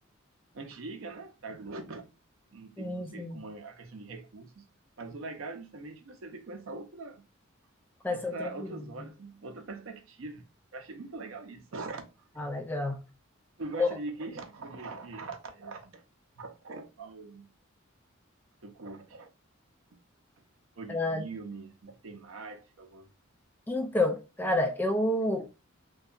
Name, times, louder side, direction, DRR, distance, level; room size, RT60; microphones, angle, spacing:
voice 1, 0.5-2.1 2.5-4.7 5.0-7.3 8.1-10.5 10.7-12.0 13.6-16.0 16.4-17.5 18.6-19.3 20.8-23.1, right 3 dB, 70° right, 0.6 m, -42 dB
voice 2, 2.8-3.4 8.0-8.7 12.4-13.0 13.8-13.9 20.9-21.2 23.7-25.5, left 2 dB, 10° left, 0.3 m, -29 dB
2.7 x 2.2 x 2.4 m
head